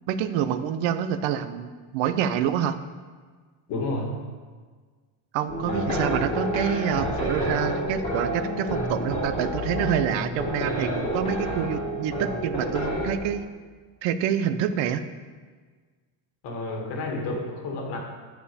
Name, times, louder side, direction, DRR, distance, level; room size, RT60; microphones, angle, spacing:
voice 1, 0.1-2.8 5.3-13.4 14.0-15.0, right 9 dB, 85° right, 11 dB, 0.7 m, -27 dB
voice 2, 3.7-4.2 16.4-18.0, left 2 dB, 65° left, 1 dB, 1.9 m, -30 dB
sound 1, 5.5-13.2, equal, 15° left, 3.1 m, -29 dB
11.5 x 4.6 x 6.9 m, 1.5 s
cardioid pair, 175°, 44 cm